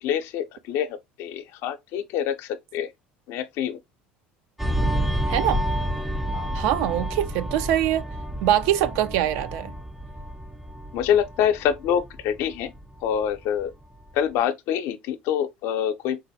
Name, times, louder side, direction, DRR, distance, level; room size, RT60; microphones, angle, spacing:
voice 1, 0.0-2.9 3.3-3.8 6.3-6.5 10.9-12.7 13.0-13.7 14.1-16.2, left 9 dB, 65° left, 0.5 m, -26 dB
sound 1, 4.6-13.6 14.0-14.2, equal, 5° right, 0.4 m, -30 dB
voice 2, 5.3-5.6 6.5-8.0 8.4-9.7, right 12 dB, 70° right, 0.4 m, -23 dB
3.8 x 2.2 x 2.6 m
hypercardioid pair, 75°, 5 cm